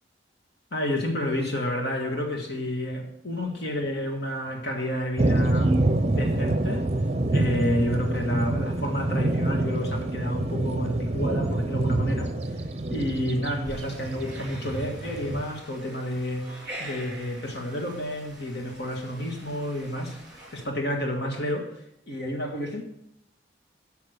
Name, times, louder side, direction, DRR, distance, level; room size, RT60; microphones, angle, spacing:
voice 1, 0.7-5.8 6.1-6.9 7.3-12.3 12.9-20.2 20.5-21.7 22.1-22.8, left 1 dB, 60° left, 2 dB, 1.7 m, -30 dB
sound 1, 5.2-15.4, right 2 dB, 35° right, 0.7 m, -26 dB
sound 2, 13.6-20.6, right 1 dB, 5° right, 3.9 m, -44 dB
9.3 x 5.8 x 6.5 m, 0.77 s
head